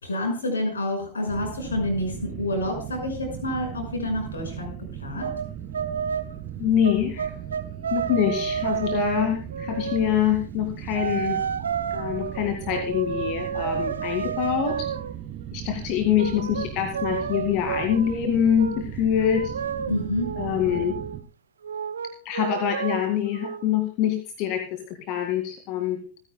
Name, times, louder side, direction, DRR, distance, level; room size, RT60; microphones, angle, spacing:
voice 1, 0.0-4.7 5.0-5.3 19.9-20.3, left 1 dB, 75° left, 3 dB, 5.8 m, -28 dB
sound 1, 1.3-21.2, right 11 dB, 35° right, 1.1 m, -38 dB
sound 2, 5.2-5.5 5.7-6.3 6.8-10.2 10.9-15.1 16.2-18.2 18.6-18.9 19.2-21.2 21.6-23.7, right 7 dB, 70° right, 0.9 m, -30 dB
voice 2, 6.6-7.3 7.9-11.4 11.9-14.9 15.5-19.5 20.4-21.0 22.2-26.0, left 9 dB, 45° left, 6 dB, 2.1 m, -25 dB
27.5 x 9.9 x 2.3 m, 0.39 s
figure-of-eight pair, 90°, 0 cm